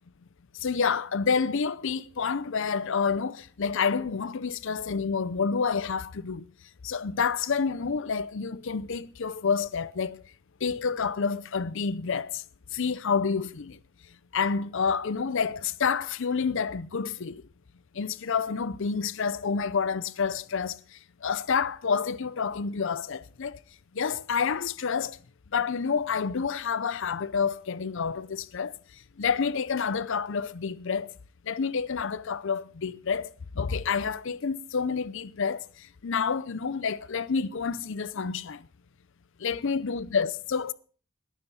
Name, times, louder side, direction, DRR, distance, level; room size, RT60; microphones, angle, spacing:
voice 1, 0.5-6.5 6.8-10.3 10.6-12.4 12.7-13.8 14.3-17.4 17.9-23.6 23.9-25.2 25.5-31.1 31.5-38.7 39.4-40.7, left 5 dB, 65° left, 0.6 m, -29 dB
20.5 x 9.3 x 4.3 m
head